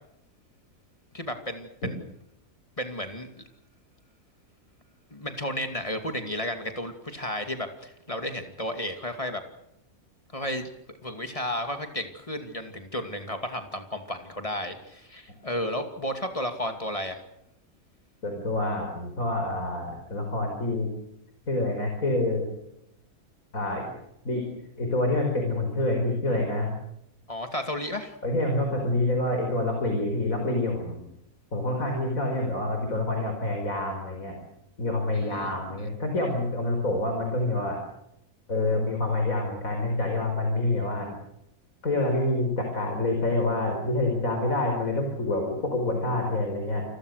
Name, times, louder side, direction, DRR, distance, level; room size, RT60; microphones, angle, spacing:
voice 1, 1.1-2.0 2.8-3.4 5.1-9.4 10.3-10.7 11.0-17.2 27.3-28.2 35.1-35.9, left 1 dB, 20° left, 6 dB, 2.5 m, -33 dB
voice 2, 18.2-20.9 21.5-22.5 23.5-23.8 24.2-24.4 24.8-26.8 28.2-31.0 31.5-34.4 34.8-37.8 38.5-41.2 41.8-46.8, left 2 dB, 65° left, 3 dB, 5.4 m, -27 dB
29.0 x 22.0 x 6.6 m, 0.79 s
omnidirectional pair, 1.5 m